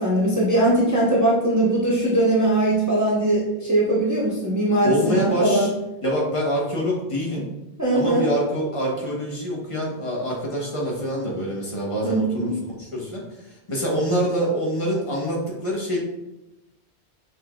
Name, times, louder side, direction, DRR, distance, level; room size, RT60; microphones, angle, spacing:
voice 1, 0.0-5.7 7.8-8.3 12.0-12.6, right 1 dB, 15° right, -6 dB, 0.9 m, -20 dB
voice 2, 4.8-5.7 6.0-7.4 7.9-12.5 12.8-16.0, equal, 30° left, -3 dB, 1.0 m, -25 dB
5.7 x 3.1 x 2.3 m, 0.95 s
omnidirectional pair, 1.1 m